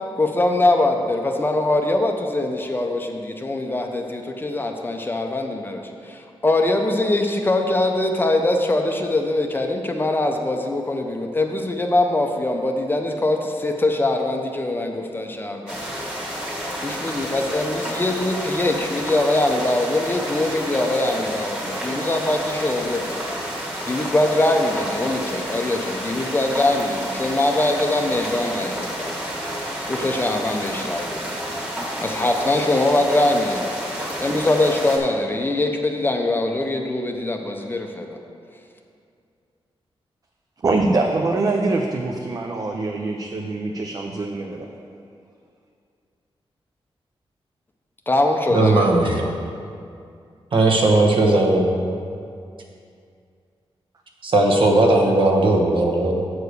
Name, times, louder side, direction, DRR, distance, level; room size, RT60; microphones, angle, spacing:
voice 1, 0.2-15.8 16.8-23.2 23.8-29.2 29.9-31.3 32.0-38.2 48.1-48.9, left 2 dB, 20° left, 3 dB, 0.5 m, -22 dB
sound 1, 15.7-35.0, equal, 10° right, 1.4 m, -30 dB
voice 2, 40.6-44.7, right 3 dB, 40° right, 2 dB, 0.5 m, -23 dB
voice 3, 48.5-49.2 50.5-51.7 54.2-56.1, right 2 dB, 60° right, 0 dB, 1.1 m, -17 dB
8.1 x 4.8 x 6.5 m, 2.4 s
wide cardioid pair, 160°, 10 cm